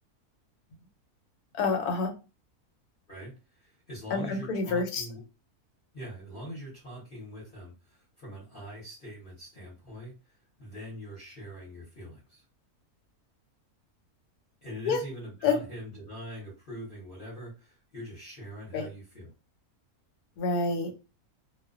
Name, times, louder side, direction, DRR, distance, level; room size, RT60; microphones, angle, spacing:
voice 1, 1.5-2.1 4.1-5.0 14.9-15.0 15.4-15.6 18.7-18.9 20.4-20.9, left 4 dB, 85° left, 5 dB, 1.1 m, -27 dB
voice 2, 3.1-5.2 5.9-12.4 14.6-19.3, equal, 45° left, -5 dB, 0.9 m, -43 dB
2.4 x 2.1 x 2.3 m, 0.30 s
omnidirectional pair, 1.6 m